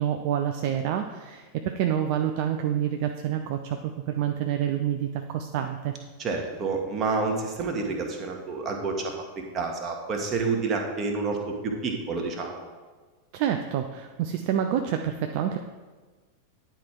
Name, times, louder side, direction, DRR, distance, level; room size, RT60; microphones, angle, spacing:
voice 1, 0.0-5.9 13.3-15.6, right 10 dB, 45° right, 6 dB, 0.5 m, -28 dB
voice 2, 6.2-11.4 11.6-12.6, right 4 dB, 25° right, 1 dB, 1.4 m, -29 dB
10.0 x 4.5 x 4.7 m, 1.4 s
figure-of-eight pair, 90°, 0 cm